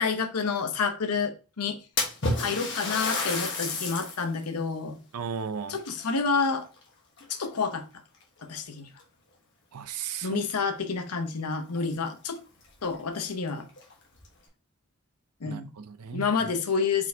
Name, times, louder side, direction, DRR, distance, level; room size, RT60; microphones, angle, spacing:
voice 1, 0.0-1.8 2.4-5.0 5.7-6.7 7.3-7.8 8.4-8.9 10.2-12.4 12.8-13.7 15.4-15.7 16.1-17.1, left 5 dB, 90° left, 0.8 m, -29 dB
Splash splatter, 2.0-4.3 4.8-4.9 5.8-6.8 7.2-7.6 8.4-8.5 9.0-9.1 11.3-11.4 11.7-11.8 12.3-12.4 12.8-12.9 13.7-14.3, left 3 dB, 50° left, 1.3 m, -31 dB
voice 2, 5.1-5.8 9.7-10.4 15.5-16.5, right 6 dB, 90° right, 0.5 m, -35 dB
4.5 x 4.2 x 2.7 m
head